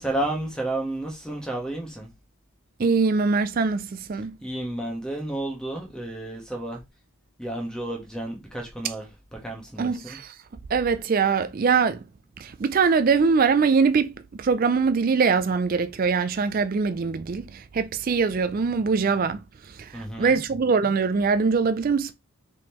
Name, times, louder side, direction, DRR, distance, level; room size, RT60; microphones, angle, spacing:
voice 1, 0.0-2.1 4.4-6.8 7.4-9.1 9.3-10.2 19.9-20.4, right 1 dB, 5° left, 1.2 m, -31 dB
voice 2, 2.8-4.3 9.8-10.3 10.7-12.0 12.4-19.4 19.8-22.1, right 5 dB, 40° right, 0.3 m, -22 dB
4.8 x 3.7 x 3.0 m
head